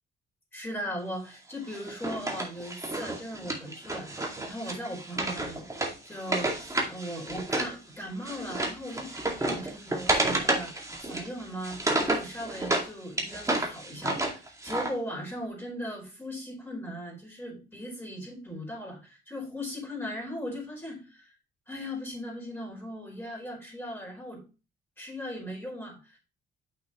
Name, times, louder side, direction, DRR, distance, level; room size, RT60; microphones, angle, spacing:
voice 1, 0.5-5.7 6.0-21.3 21.7-24.4 25.0-26.2, equal, 10° left, -2 dB, 4.7 m, -38 dB
Wood, 1.7-7.7 8.0-12.9 13.2-14.9, right 2 dB, 15° right, 2.2 m, -31 dB
8.1 x 6.2 x 3.1 m, 0.31 s
cardioid pair, 90°, 20 cm